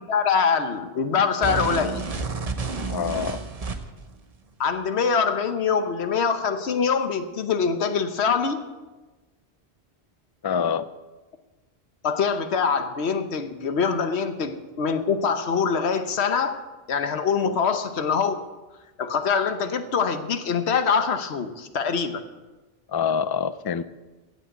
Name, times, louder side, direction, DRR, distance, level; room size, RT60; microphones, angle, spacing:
voice 1, 0.1-2.1 4.6-8.6 12.0-16.6 16.9-18.4 19.0-22.2, left 6 dB, 85° left, 9 dB, 1.2 m, -24 dB
sound 1, 1.4-4.1, right 4 dB, 40° right, 1.0 m, -30 dB
voice 2, 2.9-3.4 10.4-10.9 17.4-17.6 22.9-23.8, left 7 dB, 40° left, 14 dB, 0.3 m, -26 dB
16.0 x 6.3 x 8.1 m, 1.2 s
omnidirectional pair, 1.1 m